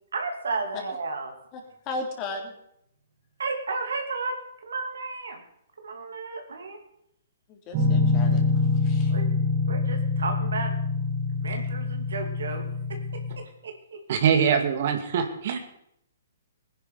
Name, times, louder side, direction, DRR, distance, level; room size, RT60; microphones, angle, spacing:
voice 1, 0.1-1.3 3.4-4.4 4.6-5.4 5.8-6.8 9.1-9.3 9.7-10.7 11.3-14.0, right 4 dB, 75° right, 4 dB, 2.9 m, -33 dB
voice 2, 1.9-2.5 7.5-9.1, left 2 dB, 30° left, 2 dB, 3.6 m, -36 dB
sound 1, 7.7-13.3, left 3 dB, 35° right, 4.4 m, -25 dB
voice 3, 14.1-15.6, right 7 dB, 55° right, 6 dB, 2.2 m, -23 dB
20.0 x 10.5 x 5.1 m, 0.75 s
hypercardioid pair, 130°, 0 cm